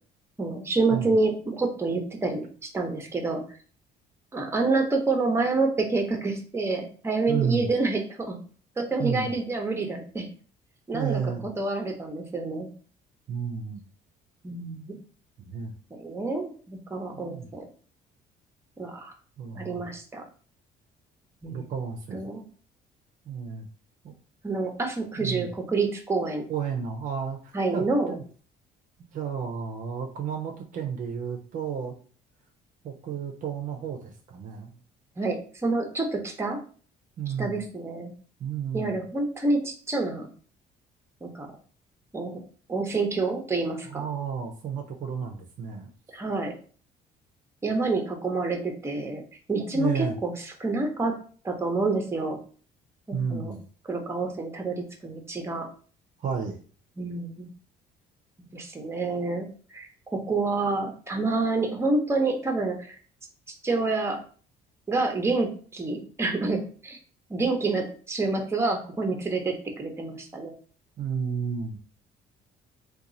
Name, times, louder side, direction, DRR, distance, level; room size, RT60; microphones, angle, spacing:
voice 1, 0.4-3.4 4.3-8.4 8.8-10.3 10.9-12.7 14.4-15.0 15.9-17.6 18.8-19.1 19.5-20.2 21.4-21.6 22.1-22.4 24.4-26.4 27.5-28.2 35.2-36.6 37.4-38.1 38.7-40.3 41.2-41.5 42.1-42.4 42.7-44.1 46.1-46.5 47.6-49.2 49.5-51.2 51.4-52.4 53.1-53.5 53.9-55.7 57.0-57.5 58.5-59.5 59.7-63.0 63.6-64.2 64.9-67.0 67.3-70.5, right 3 dB, 15° right, 3 dB, 0.7 m, -28 dB
voice 2, 7.3-7.7 9.0-9.3 10.9-11.5 13.3-13.8 15.4-15.7 17.1-17.5 19.4-19.8 21.5-22.2 23.3-23.7 25.2-25.5 26.5-28.2 29.1-31.9 32.8-34.8 37.2-37.6 38.4-39.0 43.9-45.9 49.7-50.2 53.1-53.6 56.2-56.6 71.0-71.8, right 7 dB, 50° right, 3 dB, 0.6 m, -32 dB
2.9 x 2.3 x 3.8 m, 0.41 s
cardioid pair, 110°, 17 cm